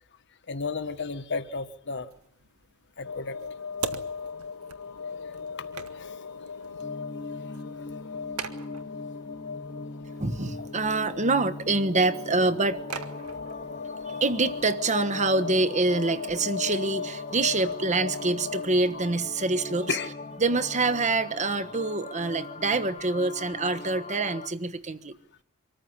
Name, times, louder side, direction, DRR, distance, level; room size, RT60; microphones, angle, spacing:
voice 1, 0.5-2.1 3.0-3.4 5.9-6.2 10.6-10.7 18.9-19.0 19.9-20.1, left 4 dB, 55° left, 10 dB, 1.6 m, -33 dB
sound 1, 2.1-19.7, right 5 dB, 85° right, 1.8 m, -45 dB
sound 2, 3.0-18.7, left 5 dB, 85° left, 0.9 m, -38 dB
sound 3, 6.8-24.5, left 3 dB, 30° left, 0.9 m, -41 dB
voice 2, 10.2-12.8 14.1-20.0 20.4-25.2, right 3 dB, 35° right, 10 dB, 1.3 m, -26 dB
25.5 x 14.5 x 9.8 m, 0.73 s
head